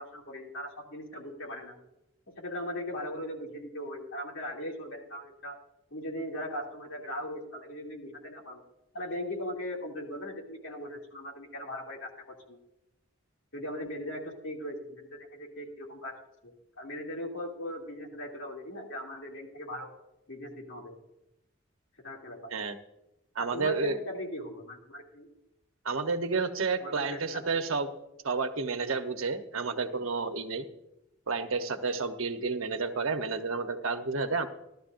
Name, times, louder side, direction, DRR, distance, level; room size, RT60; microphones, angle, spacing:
voice 1, 0.0-1.8 2.4-5.6 5.9-8.6 8.9-12.6 13.5-19.9 20.3-21.0 22.0-22.5 23.4-25.3 26.8-27.6, left 1 dB, 75° left, -1 dB, 2.4 m, -39 dB
voice 2, 23.4-24.0 25.8-27.9 28.2-30.7 31.3-34.5, right 4 dB, 90° right, 7 dB, 1.0 m, -30 dB
15.0 x 12.5 x 2.6 m, 0.89 s
head